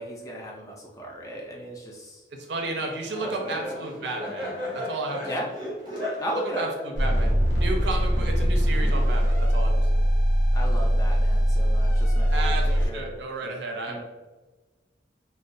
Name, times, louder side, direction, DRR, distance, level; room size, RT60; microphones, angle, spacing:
voice 1, 0.0-2.2 3.2-3.6 5.3-5.5 6.2-6.6 10.5-13.1 13.4-13.6 13.9-14.0, equal, 20° left, -2 dB, 0.4 m, -36 dB
Laughter, 2.5-8.4, left 1 dB, 25° right, 0.6 m, -36 dB
voice 2, 2.5-5.2 6.6-10.0 12.3-14.0, right 2 dB, 80° right, 2 dB, 0.5 m, -33 dB
sound 1, 7.0-12.9, equal, 90° left, 0.6 m, -21 dB
2.2 x 2.2 x 2.5 m, 1.2 s
head